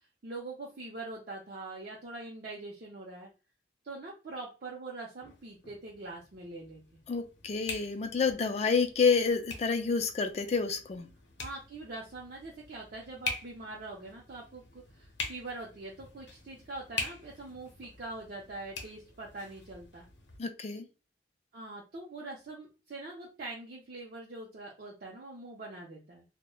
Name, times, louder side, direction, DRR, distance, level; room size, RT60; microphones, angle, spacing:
voice 1, 0.2-3.3 3.8-6.8 11.4-20.1 21.5-26.2, right 2 dB, 55° right, -3 dB, 0.5 m, -43 dB
sound 1, 5.2-20.4, left 3 dB, 80° left, 0.7 m, -44 dB
voice 2, 7.1-11.1 20.4-20.9, left 5 dB, 35° left, 7 dB, 0.3 m, -29 dB
3.0 x 2.1 x 2.2 m, 0.32 s
head